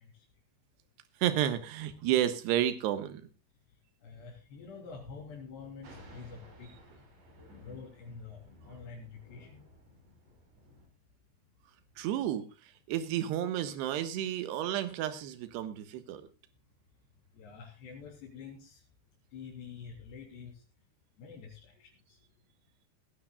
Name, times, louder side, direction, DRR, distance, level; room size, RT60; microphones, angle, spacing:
voice 1, 1.2-3.2 12.0-12.4 12.9-16.2, right 11 dB, 80° right, 11 dB, 3.4 m, -31 dB
voice 2, 4.0-6.7 7.6-9.6 17.4-18.8 19.3-20.6 21.2-22.2, left 5 dB, 80° left, -4 dB, 5.7 m, -47 dB
Thunder, 5.8-10.9, left 1 dB, 50° right, 6.4 m, -55 dB
20.0 x 15.5 x 2.3 m, 0.29 s
omnidirectional pair, 4.8 m